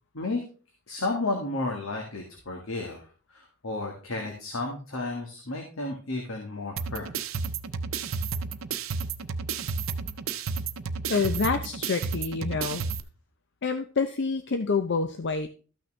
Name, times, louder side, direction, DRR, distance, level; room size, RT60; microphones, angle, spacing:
voice 1, 0.9-3.0 3.3-7.1, left 2 dB, 90° left, 2 dB, 1.8 m, -32 dB
sound 1, 6.8-13.0, right 5 dB, 85° right, 0.7 m, -32 dB
voice 2, 11.1-12.8 13.6-15.5, left 4 dB, 60° left, 8 dB, 0.6 m, -27 dB
13.0 x 6.2 x 3.3 m, 0.38 s
head